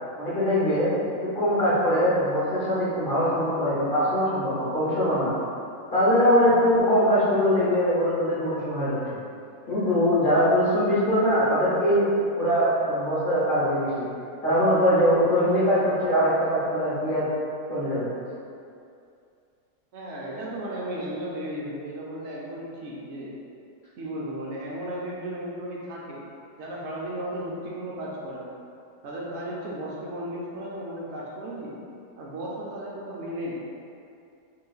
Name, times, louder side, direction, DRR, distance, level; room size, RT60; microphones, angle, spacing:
voice 1, 0.2-5.3 5.9-9.2 9.7-14.1 14.4-17.3 17.7-18.1, equal, 45° left, -10 dB, 0.7 m, -22 dB
voice 2, 19.9-23.3 24.0-26.2 26.6-28.5 29.0-31.8 32.2-33.5, right 1 dB, 90° right, -5 dB, 0.6 m, -35 dB
3.9 x 2.9 x 2.3 m, 2.5 s
omnidirectional pair, 1.8 m